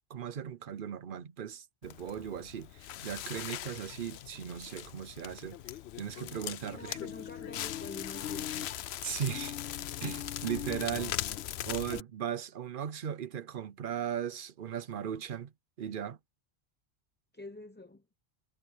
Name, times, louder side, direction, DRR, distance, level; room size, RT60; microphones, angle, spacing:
voice 1, 0.1-7.0 9.0-9.6 10.0-11.2 11.6-15.5 15.8-16.2, right 9 dB, 60° right, 0.9 m, -37 dB
Crackle, 1.8-12.0, left 11 dB, 80° left, 0.9 m, -39 dB
voice 2, 6.7-8.8 17.3-18.1, left 2 dB, 10° left, 0.8 m, -47 dB
omnidirectional pair, 1.1 m